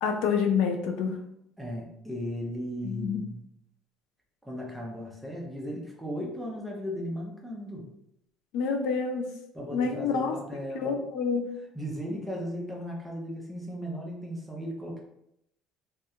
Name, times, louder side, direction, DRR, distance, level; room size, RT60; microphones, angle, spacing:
voice 1, 0.0-1.2 2.8-3.2 8.5-9.3 9.7-10.3 10.8-11.5, left 5 dB, 65° left, 4 dB, 0.3 m, -27 dB
voice 2, 1.6-3.5 4.4-7.9 9.5-11.0 11.7-15.0, equal, ahead, -2 dB, 0.4 m, -36 dB
2.3 x 2.2 x 2.8 m, 0.78 s
cardioid pair, 180°, 0 cm